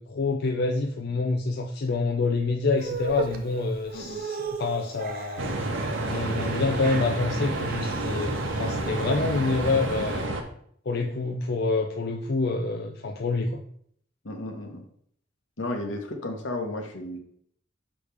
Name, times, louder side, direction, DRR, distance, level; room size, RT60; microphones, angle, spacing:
voice 1, 0.0-5.7 6.0-10.3 10.9-13.6, left 3 dB, 60° left, 2 dB, 0.5 m, -27 dB
sound 1, 2.8-10.2, right 4 dB, 50° right, 0.6 m, -37 dB
sound 2, 5.4-10.4, right 2 dB, 85° right, 1.0 m, -29 dB
voice 2, 14.2-14.9 15.6-17.2, left 2 dB, 80° left, 3 dB, 1.2 m, -33 dB
6.4 x 5.2 x 3.4 m, 0.65 s
head